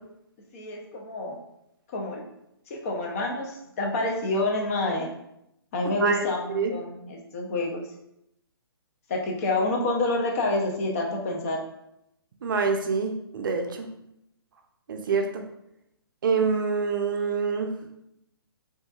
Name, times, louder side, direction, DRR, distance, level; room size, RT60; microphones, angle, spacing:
voice 1, 0.5-1.4 1.9-2.2 2.7-5.1 5.7-7.9 9.1-11.6, left 2 dB, 35° left, 1 dB, 0.6 m, -28 dB
voice 2, 12.4-13.9 14.9-15.4 16.2-17.7, right 5 dB, 55° right, 4 dB, 0.5 m, -26 dB
3.7 x 2.6 x 2.4 m, 0.80 s
figure-of-eight pair, 140°, 13 cm